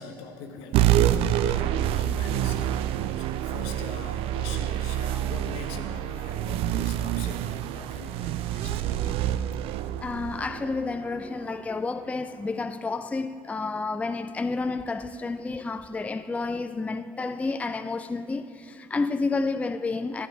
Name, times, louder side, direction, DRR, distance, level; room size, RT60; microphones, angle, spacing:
voice 1, 0.0-9.3, left 5 dB, 75° left, 1.0 m, -43 dB
sound 1, 0.7-11.6, right 12 dB, 65° right, 0.4 m, -27 dB
voice 2, 10.0-20.3, left 3 dB, 15° left, 0.4 m, -30 dB
11.0 x 10.5 x 3.5 m
hypercardioid pair, 70°, 11 cm